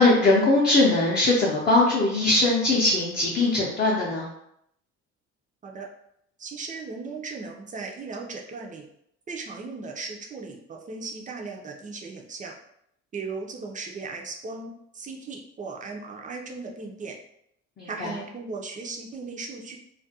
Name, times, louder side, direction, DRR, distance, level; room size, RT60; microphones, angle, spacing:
voice 1, 0.0-4.3 17.8-18.2, left 2 dB, 30° left, -5 dB, 0.6 m, -21 dB
voice 2, 6.4-8.9 9.3-12.5 13.1-17.2 17.9-19.8, right 4 dB, 25° right, 0 dB, 0.4 m, -37 dB
2.4 x 2.1 x 2.7 m, 0.75 s
cardioid pair, 100°, 29 cm